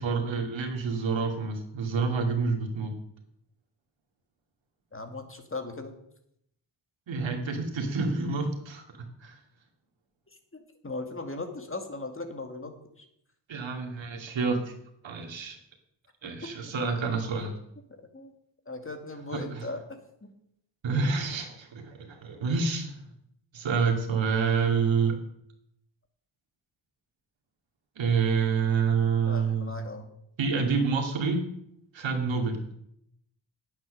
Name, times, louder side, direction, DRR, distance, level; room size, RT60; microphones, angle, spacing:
voice 1, 0.0-2.9 7.1-9.4 13.5-14.8 15.0-15.6 16.2-17.5 19.3-19.6 20.8-23.0 23.5-25.1 28.0-29.7 30.4-31.5 31.9-32.7, right 5 dB, 70° right, 2 dB, 2.4 m, -28 dB
voice 2, 4.9-5.9 10.3-13.1 18.1-18.3 18.7-20.3 29.3-30.1, left 2 dB, 25° left, 6 dB, 2.1 m, -38 dB
9.0 x 8.8 x 6.4 m, 0.73 s
cardioid pair, 55°, 47 cm